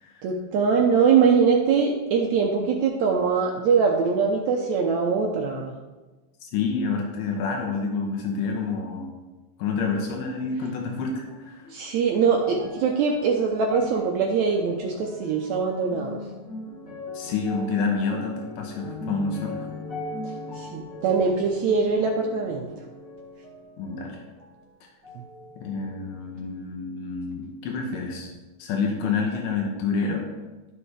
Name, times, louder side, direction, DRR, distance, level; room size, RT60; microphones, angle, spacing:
voice 1, 0.2-5.7 11.7-16.2 20.6-22.7, right 5 dB, 75° right, 1 dB, 1.7 m, -22 dB
voice 2, 6.4-9.1 9.6-11.7 17.1-19.7 23.8-24.2 25.6-28.3 28.6-30.3, left 4 dB, 90° left, 1 dB, 2.6 m, -28 dB
sound 1, 11.2-24.7 25.0-26.0 26.7-26.8, left 2 dB, 30° left, 2.0 m, -40 dB
12.5 x 5.5 x 3.3 m, 1.2 s
omnidirectional pair, 3.8 m